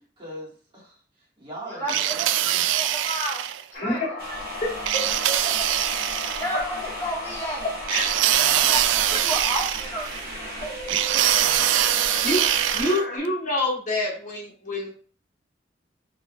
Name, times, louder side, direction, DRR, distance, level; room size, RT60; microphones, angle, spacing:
voice 1, 0.2-1.0 1.4-2.7 5.4-5.9 8.2-8.8 10.6-11.3, right 2 dB, 25° right, -6 dB, 2.1 m, -40 dB
voice 2, 1.6-2.2 2.4-4.0 6.4-7.7 8.5-8.8 9.2-10.8 11.1-11.2, equal, 15° left, -4 dB, 1.7 m, -32 dB
sound 1, 1.9-3.6 4.9-6.5 7.9-10.2 10.9-13.0, right 12 dB, 85° right, 0.3 m, -23 dB
sound 2, 3.7-13.2, left 2 dB, 70° left, 2.0 m, -36 dB
sound 3, 4.2-12.8, right 2 dB, 55° right, 1.4 m, -38 dB
voice 3, 12.7-14.9, left 1 dB, 40° left, -3 dB, 1.6 m, -26 dB
4.8 x 3.6 x 2.5 m, 0.42 s
head